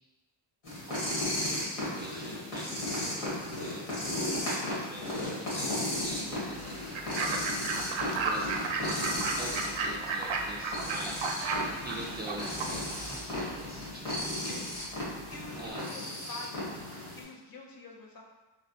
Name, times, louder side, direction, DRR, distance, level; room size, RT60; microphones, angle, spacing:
sound 1, 0.6-17.2, left 1 dB, 90° left, 1.4 m, -35 dB
voice 1, 0.9-7.7 8.2-14.6 15.6-15.8, right 1 dB, 25° right, -4 dB, 0.3 m, -45 dB
sound 2, 6.0-15.7, equal, 75° left, 1.1 m, -49 dB
Fowl / Bird, 6.9-13.1, right 4 dB, 75° right, 0.5 m, -34 dB
voice 2, 15.3-16.7 17.1-18.2, left 3 dB, 45° left, 0 dB, 0.6 m, -46 dB
3.4 x 2.2 x 2.6 m, 1.1 s
cardioid pair, 90°, 48 cm